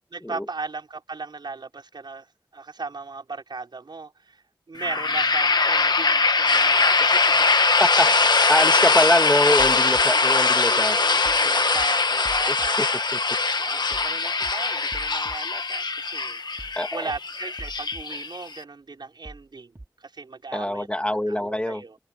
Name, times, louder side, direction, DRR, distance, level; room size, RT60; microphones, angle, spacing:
voice 1, 0.1-2.3 2.5-7.8 10.6-13.1 13.5-20.9 21.3-22.0, right 4 dB, 75° right, 5.4 m, -37 dB
sound 1, 4.8-18.6, left 4 dB, 70° left, 1.4 m, -21 dB
voice 2, 8.5-11.0 11.4-11.5 12.5-12.9 13.1-13.2 16.8-17.1 20.5-21.8, left 1 dB, 15° left, 2.7 m, -24 dB
sound 2, 9.6-10.0 11.2-11.4 11.7-11.9 12.2-12.7 13.9-14.1 14.4-14.5 14.9-15.4 16.6-16.8 17.1-17.2 17.6-18.0 19.2-19.4 19.7-19.9, right 2 dB, 35° right, 3.6 m, -41 dB
wide cardioid pair, 50°, 8 cm